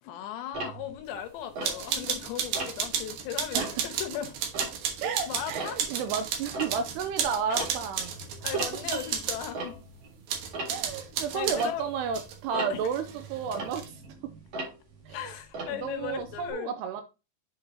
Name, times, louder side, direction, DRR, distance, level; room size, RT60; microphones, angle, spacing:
voice 1, 0.0-4.3 5.3-5.8 7.5-7.7 8.4-9.8 11.3-11.9 12.5-12.9 15.1-16.7, left 10 dB, 75° left, 3.0 m, -37 dB
Tick-tock, 0.5-2.2 2.5-3.0 3.4-6.1 6.4-16.5, right 2 dB, 45° right, 2.4 m, -40 dB
sound 1, 1.6-9.5 10.3-11.7 12.1-12.4 12.8-13.8, right 7 dB, 65° right, 2.7 m, -33 dB
voice 2, 5.0-8.1 8.5-8.6 10.7-13.0 13.3-14.0 15.1-15.3 15.7-17.0, right 6 dB, 80° right, 2.5 m, -32 dB
7.9 x 6.6 x 2.8 m
omnidirectional pair, 5.2 m